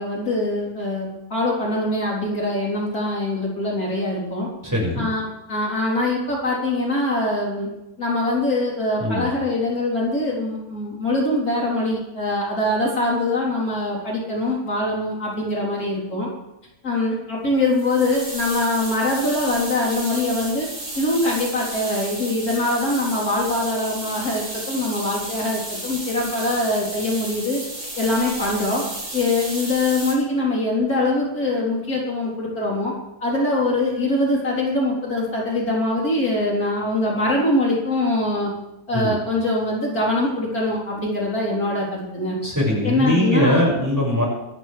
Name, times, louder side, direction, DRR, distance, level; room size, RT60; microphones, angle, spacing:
voice 1, 0.0-4.5 5.0-7.7 8.0-16.3 16.8-20.7 20.9-27.6 28.0-28.8 29.1-32.9 33.2-38.5 38.9-42.4 42.8-43.6, left 2 dB, 60° left, -4 dB, 4.5 m, -23 dB
voice 2, 4.6-5.1 9.0-9.3 38.9-39.1 42.4-44.2, left 1 dB, 10° right, -4 dB, 6.0 m, -21 dB
sound 1, 17.7-30.1, right 1 dB, 85° right, 7.4 m, -33 dB
25.0 x 12.5 x 3.5 m, 0.93 s
omnidirectional pair, 1.7 m